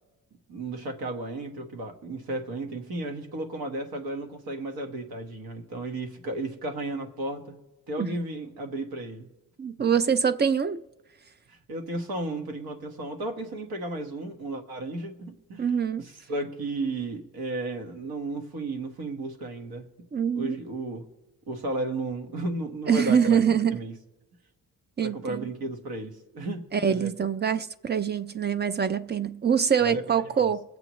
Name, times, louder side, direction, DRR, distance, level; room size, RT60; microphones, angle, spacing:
voice 1, 0.5-7.5 7.9-9.3 9.8-9.9 11.5-15.7 16.0-19.9 20.3-21.1 21.5-23.4 23.7-23.9 25.0-27.1 29.8-30.0 30.4-30.5, right 2 dB, 80° right, 1.5 m, -34 dB
voice 2, 9.6-10.8 15.6-16.0 20.1-20.6 22.9-23.8 25.0-25.5 26.7-30.6, right 7 dB, 30° right, 0.4 m, -24 dB
22.0 x 7.7 x 3.1 m
cardioid pair, 120°, 36 cm